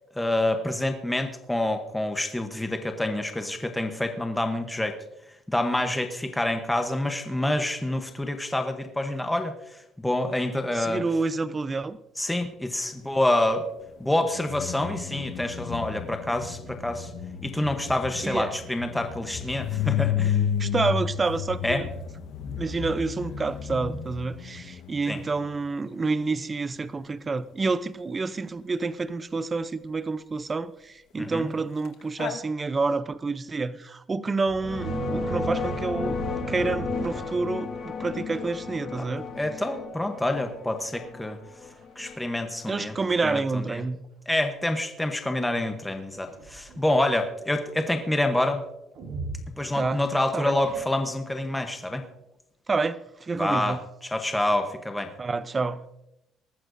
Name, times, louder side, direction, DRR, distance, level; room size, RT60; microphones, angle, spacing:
voice 1, 0.2-5.0 5.5-11.0 12.2-13.7 14.0-17.1 17.4-20.4 21.6-21.8 25.1-25.2 31.2-31.5 39.0-39.1 39.4-41.4 42.0-42.9 43.2-43.8 44.3-48.6 49.6-52.0 53.4-53.8 54.0-55.1, left 1 dB, 5° left, 0.9 m, -27 dB
voice 2, 10.7-12.0 18.2-18.5 20.6-21.9 22.6-36.2 36.5-39.3 42.7-44.0 49.7-50.0 50.3-50.6 52.7-53.8 55.2-55.9, right 3 dB, 20° right, 0.5 m, -28 dB
sound 1, 14.1-25.7 31.9-32.0 32.2-32.4, left 9 dB, 65° left, 1.2 m, -32 dB
sound 2, 34.4-37.7 38.3-38.6 38.9-39.3 39.6-39.7 40.5-40.6 41.1-41.2 41.7-42.2 43.0-43.1 45.9-46.9 48.9-50.0 50.5-51.2, right 3 dB, 60° right, 4.0 m, -37 dB
sound 3, 34.6-43.3, left 5 dB, 40° left, 1.6 m, -34 dB
19.5 x 14.0 x 2.6 m
cardioid pair, 170°, 0 cm